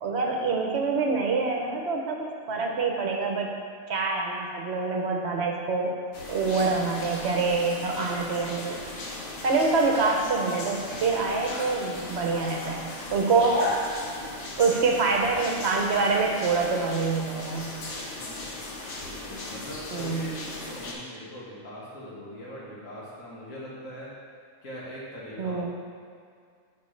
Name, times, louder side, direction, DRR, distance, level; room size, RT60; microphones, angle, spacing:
voice 1, 0.0-3.6 3.9-5.9 6.3-8.8 9.4-13.7 14.6-17.7 19.9-20.3 25.4-25.7, right 4 dB, 60° right, 1 dB, 1.0 m, -26 dB
sound 1, 6.1-20.9, left 2 dB, 65° left, 1.2 m, -37 dB
voice 2, 18.1-18.5 18.9-24.1 24.6-25.7, equal, 85° left, -7 dB, 2.1 m, -41 dB
9.9 x 4.4 x 3.2 m, 2.2 s
omnidirectional pair, 1.3 m